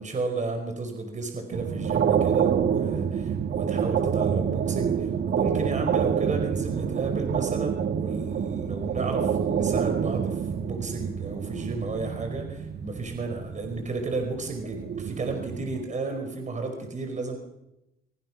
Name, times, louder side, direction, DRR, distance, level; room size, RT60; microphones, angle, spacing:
voice 1, 0.0-17.4, right 3 dB, 35° right, 5 dB, 5.0 m, -33 dB
sound 1, 1.5-15.8, right 7 dB, 60° right, 1.8 m, -27 dB
24.5 x 23.5 x 6.2 m, 0.89 s
cardioid pair, 90°, 20 cm